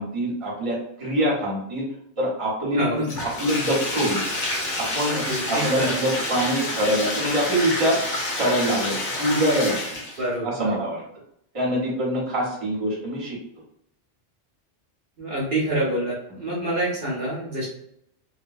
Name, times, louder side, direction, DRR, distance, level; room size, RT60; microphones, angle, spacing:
voice 1, 0.0-1.9 2.2-3.1 3.4-4.2 4.8-8.0 8.3-9.8 10.4-11.0 11.5-13.4 16.3-16.4, equal, 30° right, -4 dB, 0.9 m, -24 dB
Bathtub (filling or washing), 3.0-10.3, left 1 dB, 50° left, 0.8 m, -28 dB
voice 2, 5.2-6.0 10.2-10.7 15.2-17.7, right 1 dB, 60° right, -4 dB, 0.9 m, -26 dB
2.8 x 2.2 x 2.4 m, 0.75 s
omnidirectional pair, 1.2 m